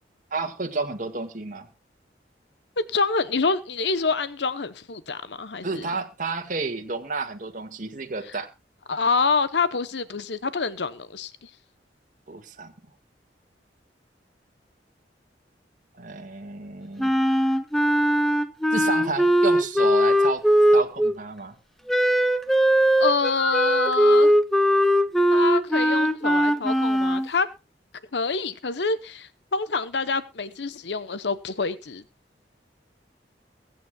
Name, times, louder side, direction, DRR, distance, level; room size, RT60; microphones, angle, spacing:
voice 1, 0.3-1.7 5.6-8.5 12.3-12.7 16.0-17.1 18.7-20.4 20.7-21.5, right 3 dB, 50° right, 1.8 m, -31 dB
voice 2, 2.9-5.9 8.9-11.5 23.0-24.3 25.3-27.5 28.1-32.0, left 4 dB, 80° left, 0.9 m, -26 dB
Wind instrument woodwind instrument, 17.0-21.2 21.9-27.3, equal, ahead, 0.8 m, -20 dB
23.0 x 9.5 x 2.3 m
head